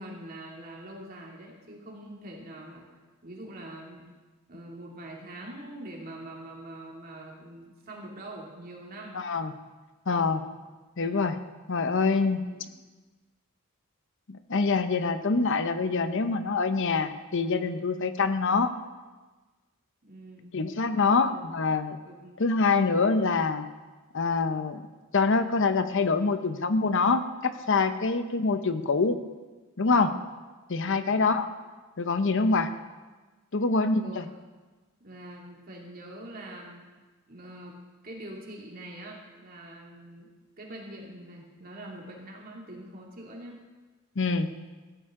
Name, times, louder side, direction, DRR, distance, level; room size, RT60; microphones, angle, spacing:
voice 1, 0.0-2.9 3.2-4.1 4.5-9.2 10.3-10.5 11.0-11.2 12.5-12.7 20.0-20.6 21.0-21.4 22.0-22.4 30.9-31.4 34.0-34.3 35.0-36.9 37.3-43.6, right 1 dB, 45° right, -2 dB, 2.6 m, -44 dB
voice 2, 9.1-9.5 10.1-10.4 11.0-11.4 11.7-12.4 14.3-18.7 20.5-22.0 22.4-23.7 24.1-24.9 25.1-29.2 29.8-30.1 30.7-31.5 32.0-32.7 33.5-34.3 44.2-44.5, left 4 dB, 60° left, 10 dB, 0.8 m, -25 dB
16.0 x 12.5 x 3.8 m, 1.3 s
head